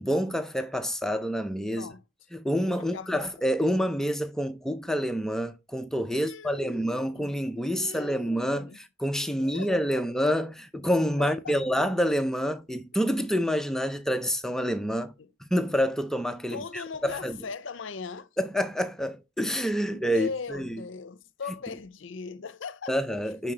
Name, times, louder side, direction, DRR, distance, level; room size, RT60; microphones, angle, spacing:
voice 1, 0.0-1.9 2.3-15.1 15.4-17.4 18.4-20.8 22.9-23.5, equal, 5° left, 0.4 m, -28 dB
voice 2, 1.7-2.0 2.8-3.5 6.1-7.3 7.7-8.8 9.4-10.0 11.2-11.6 15.2-15.3 16.5-18.3 19.8-23.0, left 5 dB, 70° left, 0.6 m, -39 dB
9.6 x 4.2 x 3.2 m
head